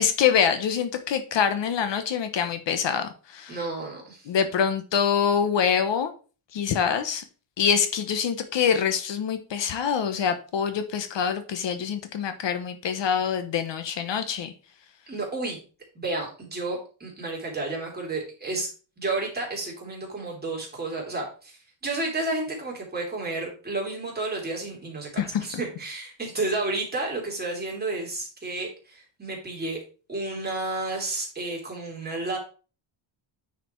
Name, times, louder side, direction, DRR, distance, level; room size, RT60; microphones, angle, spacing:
voice 1, 0.0-3.6 4.3-6.1 6.5-7.2 7.6-14.5 25.2-25.5, left 7 dB, 60° left, 9 dB, 1.0 m, -25 dB
voice 2, 3.5-4.3 15.1-15.6 15.9-18.7 19.0-29.8 30.1-32.4, right 2 dB, 20° right, -2 dB, 3.2 m, -31 dB
9.3 x 5.0 x 4.5 m, 0.36 s
wide cardioid pair, 180°, 49 cm